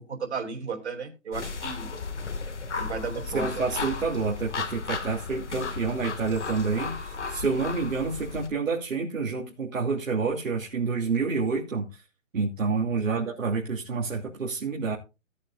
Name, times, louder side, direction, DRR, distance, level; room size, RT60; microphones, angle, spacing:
voice 1, 0.0-1.9 2.8-3.7 13.0-13.3, right 5 dB, 55° right, 5 dB, 3.4 m, -35 dB
sound 1, 1.3-8.5, left 4 dB, 60° left, 2.2 m, -34 dB
voice 2, 3.3-12.0 12.3-14.9, right 4 dB, 85° right, -2 dB, 3.0 m, -28 dB
17.0 x 8.8 x 2.6 m, 0.28 s
hypercardioid pair, 175°, 39 cm